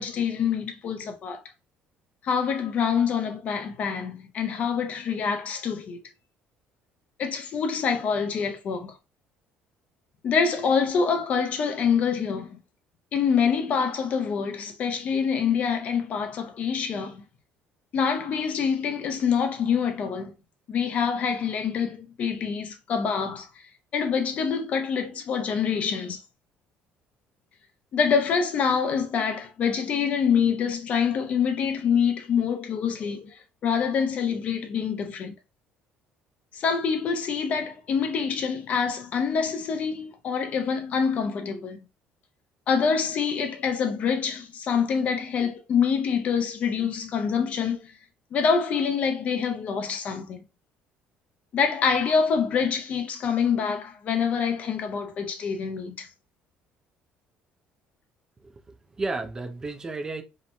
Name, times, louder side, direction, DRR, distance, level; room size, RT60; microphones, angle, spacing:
voice 1, 0.0-1.4 2.2-6.0 7.2-8.9 10.2-12.6 13.1-17.2 17.9-20.3 20.7-23.5 23.9-26.2 27.9-33.3 33.6-35.3 36.5-41.8 42.7-47.9 48.3-50.4 51.5-56.1, left 6 dB, 40° left, 0.5 m, -26 dB
voice 2, 58.4-60.2, right 3 dB, 15° right, 0.4 m, -33 dB
2.8 x 2.1 x 2.4 m
cardioid pair, 150°, 4 cm